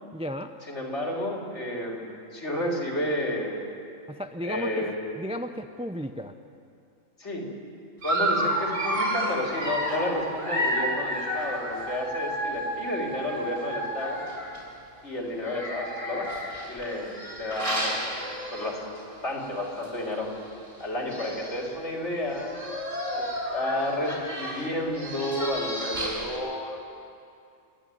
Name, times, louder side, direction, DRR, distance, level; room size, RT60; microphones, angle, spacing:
voice 1, 0.1-0.5 4.1-6.3, equal, 10° right, 7 dB, 0.4 m, -34 dB
voice 2, 0.7-3.6 4.4-5.0 7.2-7.4 8.0-14.2 15.0-16.3 16.7-17.1 17.4-18.8 19.2-20.3 20.8-22.5 23.1-23.2 23.5-26.9, left 1 dB, 55° left, -1 dB, 3.7 m, -31 dB
Dog, 8.0-14.6 15.4-19.0 19.4-19.6 19.8-19.9 20.8-20.9 21.1-21.6 22.3-26.4, equal, 70° right, 8.1 m, -31 dB
29.5 x 11.0 x 9.1 m, 2.4 s
omnidirectional pair, 1.4 m